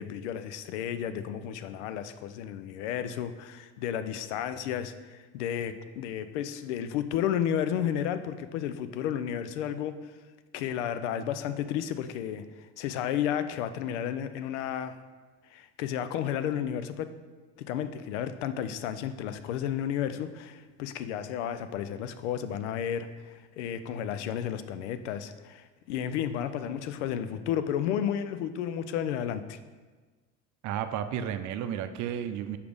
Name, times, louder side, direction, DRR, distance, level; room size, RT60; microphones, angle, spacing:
voice 1, 0.0-10.0 10.5-15.0 15.5-17.1 17.6-29.6, left 9 dB, 85° left, 11 dB, 0.5 m, -32 dB
voice 2, 30.6-32.6, right 9 dB, 55° right, 10 dB, 0.6 m, -32 dB
5.1 x 4.9 x 5.1 m, 1.3 s
supercardioid pair, 85°, 34 cm